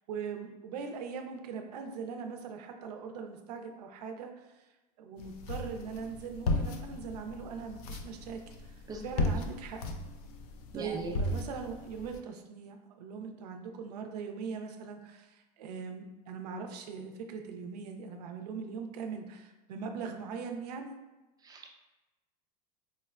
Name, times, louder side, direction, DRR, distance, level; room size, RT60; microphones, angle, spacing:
voice 1, 0.1-4.7 5.0-8.8 9.0-9.8 10.7-20.9, right 5 dB, 85° right, 5 dB, 0.5 m, -41 dB
sound 1, 5.2-12.2, left 2 dB, 70° left, 0.5 m, -36 dB
voice 2, 10.7-11.1 21.4-21.7, right 3 dB, 20° right, 2 dB, 0.5 m, -39 dB
4.3 x 2.1 x 2.3 m, 1.1 s
supercardioid pair, 115°, 20 cm